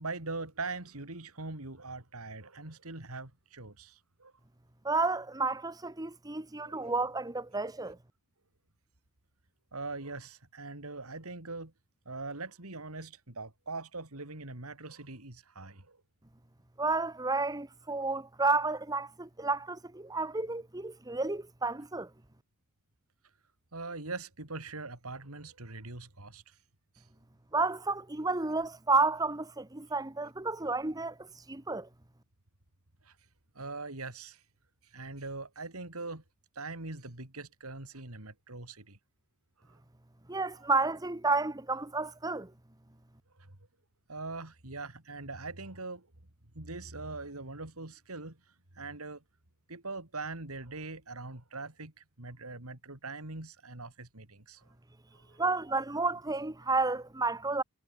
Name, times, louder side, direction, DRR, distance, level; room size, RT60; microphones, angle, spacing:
voice 1, 0.0-4.3 6.7-6.8 9.7-11.7 12.0-16.0 23.7-26.6 26.9-27.0 33.0-33.1 33.5-34.4 34.8-36.2 36.5-39.0 39.6-39.7 43.4-43.6 44.1-46.1 46.5-48.4 48.7-49.2 49.7-54.7 55.1-55.4, right 3 dB, 80° right, 3.4 m, -42 dB
voice 2, 4.8-8.0 16.8-22.1 27.5-31.2 31.5-31.9 40.3-42.5 55.4-57.6, right 3 dB, 15° right, 1.1 m, -31 dB
head